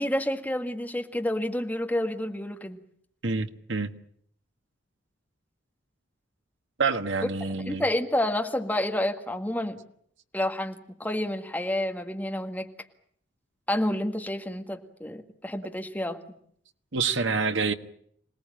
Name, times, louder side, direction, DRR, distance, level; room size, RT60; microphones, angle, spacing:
voice 1, 0.0-2.8 7.7-9.8 10.3-12.7 13.7-16.2, left 1 dB, 10° left, 1.9 m, -29 dB
voice 2, 3.2-3.9 6.8-7.8 16.9-17.7, right 4 dB, 75° right, 1.5 m, -27 dB
26.5 x 18.5 x 8.8 m
head